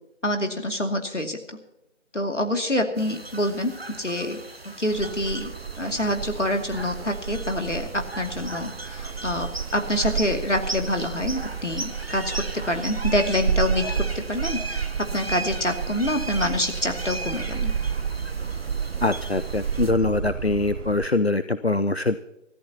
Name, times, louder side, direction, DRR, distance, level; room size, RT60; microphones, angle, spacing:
voice 1, 0.2-1.4 2.1-4.4 4.8-5.5 5.8-17.7, left 1 dB, 75° left, 4 dB, 2.5 m, -26 dB
sound 1, 3.0-19.9, right 2 dB, 55° right, 0.9 m, -37 dB
sound 2, 4.9-21.1, right 7 dB, 85° right, 0.5 m, -31 dB
voice 2, 19.0-22.2, left 2 dB, 60° left, 12 dB, 0.6 m, -23 dB
22.0 x 14.0 x 2.9 m, 0.84 s
figure-of-eight pair, 175°, 37 cm